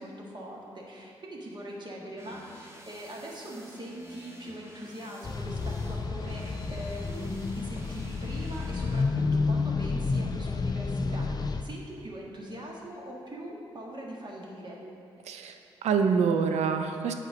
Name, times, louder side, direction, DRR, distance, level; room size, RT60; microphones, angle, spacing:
voice 1, 0.0-14.8, equal, 40° right, -2 dB, 1.8 m, -41 dB
sound 1, 2.2-9.0, equal, 25° right, 1.2 m, -51 dB
sound 2, 5.2-11.6, left 4 dB, 35° left, 0.5 m, -30 dB
voice 2, 15.2-17.1, right 6 dB, 75° right, 7 dB, 0.6 m, -26 dB
7.8 x 4.6 x 5.1 m, 2.5 s
hypercardioid pair, 40°, 11 cm